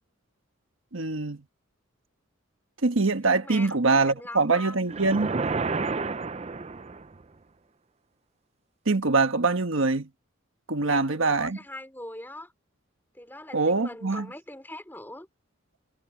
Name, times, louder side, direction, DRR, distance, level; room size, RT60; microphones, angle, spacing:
voice 1, 0.9-1.4 2.8-5.3 8.9-10.1 10.7-11.6 13.5-14.3, right 3 dB, 70° right, 1.3 m, -24 dB
voice 2, 3.4-4.8 10.8-12.5 13.1-15.3, left 1 dB, 10° left, 3.7 m, -42 dB
sound 1, 4.9-7.2, right 4 dB, 30° right, 0.5 m, -30 dB
head